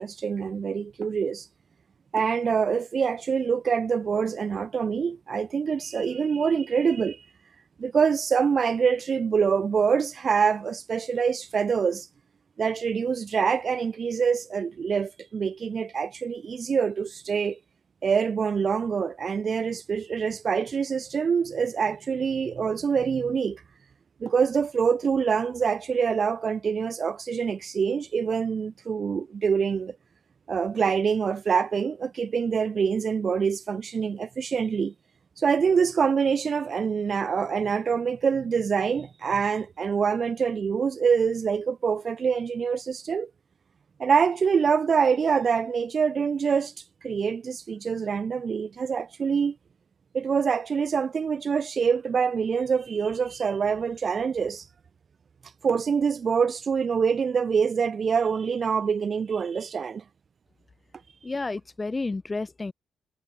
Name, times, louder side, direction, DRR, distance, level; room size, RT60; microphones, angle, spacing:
voice 1, 0.0-1.5 2.1-7.2 7.8-12.1 12.6-17.6 18.0-23.6 24.2-30.0 30.5-34.9 35.4-43.3 44.0-46.7 47.0-49.5 50.1-54.7 55.6-60.0, right 6 dB, 45° right, 1.3 m, -25 dB
voice 2, 61.2-62.7, left 3 dB, 25° left, 5.0 m, -31 dB
cardioid pair, 90°, 0 cm